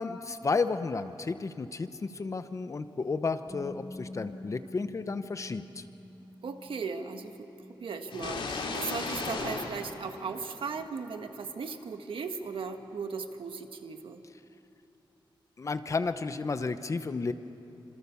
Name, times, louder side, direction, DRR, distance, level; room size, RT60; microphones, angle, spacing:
voice 1, 0.0-5.8 15.6-17.3, left 4 dB, 35° left, 10 dB, 0.9 m, -32 dB
Bass guitar, 3.5-9.7, left 1 dB, 25° right, 5.8 m, -48 dB
voice 2, 6.4-7.5 7.8-14.2, right 5 dB, 85° right, 6 dB, 1.6 m, -37 dB
sound 1, 8.1-10.9, left 4 dB, 85° left, 2.9 m, -36 dB
27.5 x 26.5 x 7.1 m, 3.0 s
wide cardioid pair, 165°, 9 cm